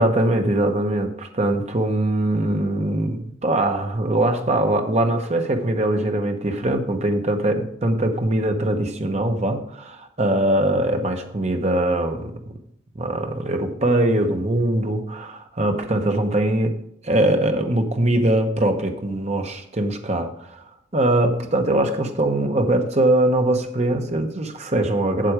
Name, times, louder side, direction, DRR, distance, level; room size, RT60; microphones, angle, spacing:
voice 1, 0.0-12.3 12.9-16.8 17.0-20.6 20.9-25.3, right 1 dB, 35° right, 5 dB, 1.0 m, -22 dB
7.7 x 7.6 x 5.0 m, 0.70 s
head